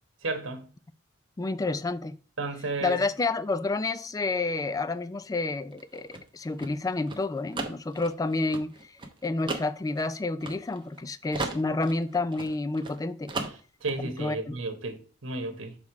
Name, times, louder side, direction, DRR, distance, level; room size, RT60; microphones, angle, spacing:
voice 1, 0.2-0.6 2.4-3.0 13.8-15.8, right 3 dB, 75° right, 1.2 m, -33 dB
voice 2, 1.4-2.2 2.8-8.9 9.2-13.3 14.2-14.6, left 3 dB, 20° left, 0.3 m, -29 dB
sound 1, 5.7-11.0 11.3-13.0 13.3-14.0, right 3 dB, 25° right, 0.9 m, -36 dB
6.4 x 3.5 x 4.7 m
head